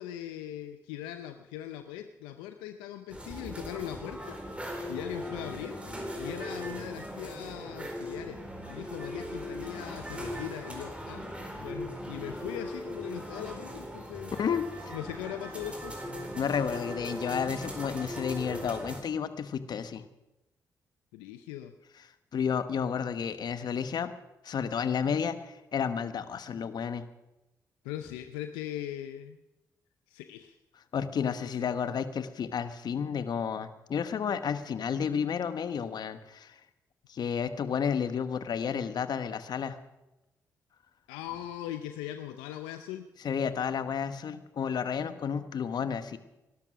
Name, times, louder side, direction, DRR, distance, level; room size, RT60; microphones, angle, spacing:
voice 1, 0.0-4.4 4.9-5.8 6.1-8.4 8.7-11.2 11.6-14.3 14.9-15.9 21.1-21.7 27.8-29.4 30.1-30.6 31.2-31.7 41.1-43.1, left 11 dB, 90° left, 8 dB, 0.6 m, -40 dB
sound 1, 3.1-19.0, equal, 15° right, 4.3 m, -39 dB
voice 2, 14.4-14.9 16.3-20.0 22.3-24.1 24.4-27.0 30.9-36.5 37.1-39.8 43.2-46.2, left 7 dB, 60° left, 11 dB, 1.2 m, -31 dB
18.5 x 12.0 x 6.1 m, 0.96 s
hypercardioid pair, 45°, 8 cm